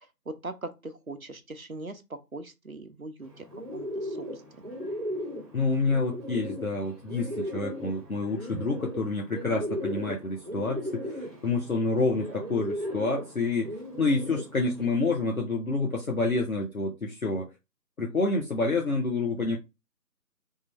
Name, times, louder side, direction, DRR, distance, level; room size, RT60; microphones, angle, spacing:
voice 1, 0.3-3.4 3.7-4.3, right 2 dB, 55° right, 0.7 m, -40 dB
Bird, 3.2-14.9, equal, ahead, 1.2 m, -37 dB
voice 2, 5.5-13.7 14.0-17.5 18.0-19.6, left 3 dB, 55° left, 0.9 m, -28 dB
3.7 x 2.4 x 4.2 m
figure-of-eight pair, 165°, 50 cm